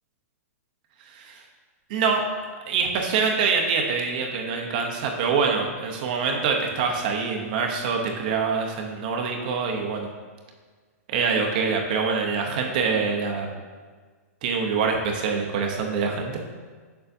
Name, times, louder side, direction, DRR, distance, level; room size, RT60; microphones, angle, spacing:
voice 1, 1.9-2.2 2.7-10.1 11.1-13.5 14.4-16.2, right 5 dB, 35° right, 2 dB, 0.7 m, -25 dB
6.8 x 6.7 x 2.6 m, 1.5 s
hypercardioid pair, 175°, 8 cm